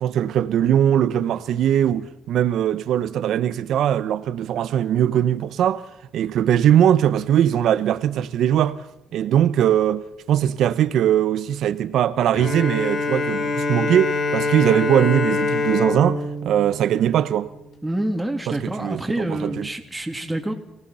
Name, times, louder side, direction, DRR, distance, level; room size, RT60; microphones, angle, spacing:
voice 1, 0.0-5.8 6.1-8.8 9.1-17.5 18.5-19.7, right 10 dB, 75° right, 1.1 m, -20 dB
Bowed string instrument, 12.3-17.8, left 3 dB, 55° left, 3.3 m, -25 dB
voice 2, 17.8-20.5, right 1 dB, 10° right, 2.9 m, -27 dB
28.0 x 18.0 x 5.7 m
cardioid pair, 90°, 0 cm